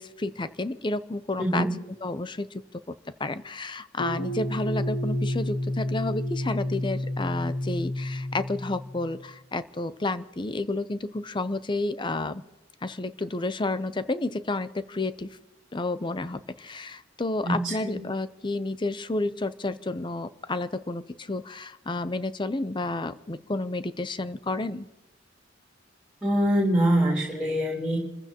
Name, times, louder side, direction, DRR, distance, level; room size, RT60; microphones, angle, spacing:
voice 1, 0.0-1.7 2.0-2.6 2.9-3.0 3.2-12.4 12.8-15.4 15.7-24.9, left 2 dB, 25° left, 13 dB, 0.6 m, -31 dB
voice 2, 1.4-1.7 17.4-18.0 26.2-28.0, right 1 dB, 5° right, -6 dB, 3.6 m, -24 dB
sound 1, 4.0-9.2, left 1 dB, 80° left, 1.6 m, -30 dB
29.5 x 15.0 x 2.9 m, 1.1 s
head